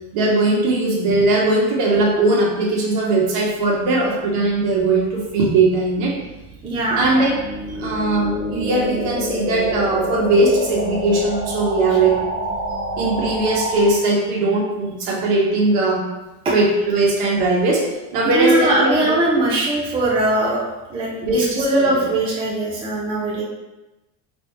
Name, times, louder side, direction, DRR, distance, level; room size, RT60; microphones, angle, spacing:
voice 1, 0.1-6.2 7.0-7.4 7.8-12.1 13.0-16.0 16.5-17.8 18.1-19.4 21.2-22.0, right 2 dB, 50° right, -3 dB, 1.4 m, -19 dB
sound 1, 4.6-14.0, right 1 dB, 5° left, 1.0 m, -28 dB
voice 2, 6.6-7.1 16.4-16.5 18.3-20.6 20.9-23.4, right 2 dB, 15° right, -5 dB, 0.3 m, -20 dB
4.2 x 2.8 x 4.6 m, 1.0 s
cardioid pair, 160°, 48 cm